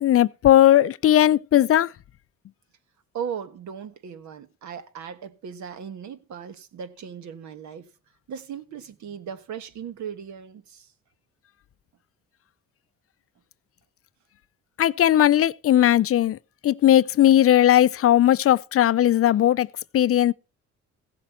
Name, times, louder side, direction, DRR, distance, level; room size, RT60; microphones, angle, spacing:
voice 1, 0.0-1.9 14.8-16.4 16.6-19.7 19.9-20.3, left 12 dB, 50° left, 0.5 m, -18 dB
voice 2, 3.1-7.9 8.3-10.9, right 7 dB, 70° right, 1.4 m, -37 dB
15.5 x 7.5 x 4.3 m
cardioid pair, 90°, 30 cm